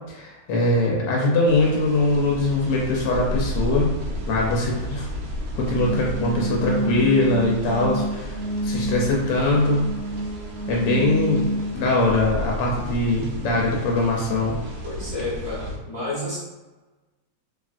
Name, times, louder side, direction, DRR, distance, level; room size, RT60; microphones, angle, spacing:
voice 1, 0.1-3.9 4.3-5.1 5.6-8.4 8.6-9.8 10.7-11.5 11.7-14.6, left 2 dB, 85° left, -2 dB, 1.3 m, -22 dB
sound 1, 1.5-15.8, equal, 70° right, 1.1 m, -33 dB
sound 2, 5.7-11.7, equal, 60° left, 0.5 m, -28 dB
voice 2, 14.8-16.4, left 2 dB, 25° left, -12 dB, 0.9 m, -30 dB
2.9 x 2.4 x 2.4 m, 1.2 s
omnidirectional pair, 1.8 m